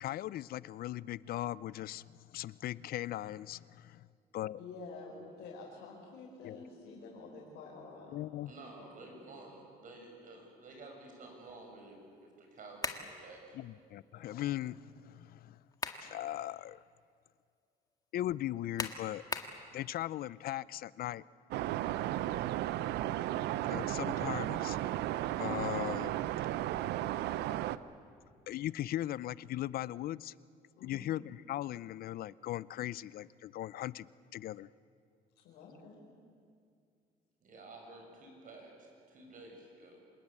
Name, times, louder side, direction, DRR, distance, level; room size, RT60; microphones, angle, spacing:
voice 1, 0.0-4.1 4.3-4.6 6.4-6.6 8.1-8.5 13.5-15.6 16.0-16.8 18.1-19.2 19.7-21.2 23.7-24.8 25.4-26.1 28.5-30.3 30.8-34.7, left 14 dB, 60° left, 20 dB, 0.6 m, -38 dB
voice 2, 4.6-8.8 14.1-14.6 22.8-23.1 30.8-31.1 35.4-36.0, left 3 dB, 80° left, -4 dB, 5.1 m, -50 dB
voice 3, 8.5-13.7 37.4-40.0, right 2 dB, 50° right, 1 dB, 7.4 m, -52 dB
sound 1, 12.8-13.1 15.5-16.1 16.6-16.7 18.8-19.6, left 3 dB, 20° left, 1.8 m, -38 dB
sound 2, 21.5-27.8, right 14 dB, 80° right, 0.7 m, -34 dB
26.5 x 20.0 x 8.6 m, 2.3 s
cardioid pair, 110°, 17 cm